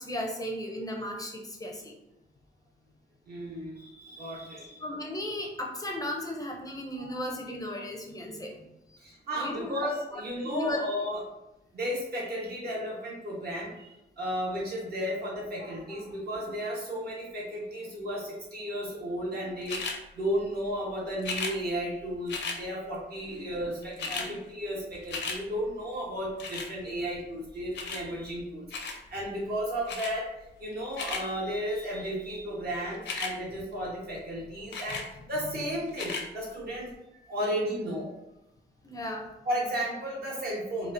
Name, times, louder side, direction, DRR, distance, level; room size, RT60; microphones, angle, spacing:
voice 1, 0.0-1.9 4.8-8.5 9.4-9.8 10.4-10.8 23.3-23.5 24.1-24.3 38.8-39.3, left 1 dB, 20° left, 1 dB, 0.4 m, -36 dB
voice 2, 3.3-4.8 7.0-7.1 7.8-7.9 9.0-11.2 11.7-19.8 20.1-30.3 30.6-35.0 35.3-38.1 39.4-40.9, equal, 60° right, -4 dB, 1.0 m, -34 dB
sound 1, 19.7-20.0 21.2-21.6 22.3-22.6 23.5-23.6 23.8-24.3 24.7-25.4 26.4-26.7 27.7-28.0 28.7-29.0 29.9-30.1 30.7-31.2 32.9-33.3 34.7-35.1 35.9-36.3 36.9-37.0, left 4 dB, 75° left, 0.5 m, -35 dB
4.2 x 2.3 x 2.5 m, 0.91 s
wide cardioid pair, 165°, 19 cm